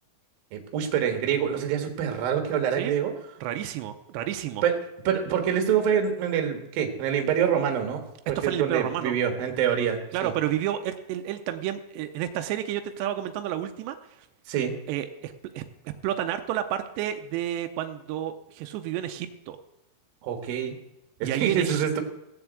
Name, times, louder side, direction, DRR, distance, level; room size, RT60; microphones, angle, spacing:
voice 1, 0.5-3.1 4.6-4.8 5.0-8.0 8.3-10.3 14.5-14.8 20.2-20.8 21.2-22.0, right 8 dB, 65° right, 6 dB, 3.2 m, -26 dB
voice 2, 3.4-4.6 8.4-9.1 10.1-14.0 14.9-15.7 16.0-19.6 21.2-21.9, right 11 dB, 90° right, 7 dB, 2.9 m, -30 dB
17.5 x 7.1 x 8.2 m, 0.91 s
omnidirectional pair, 5.0 m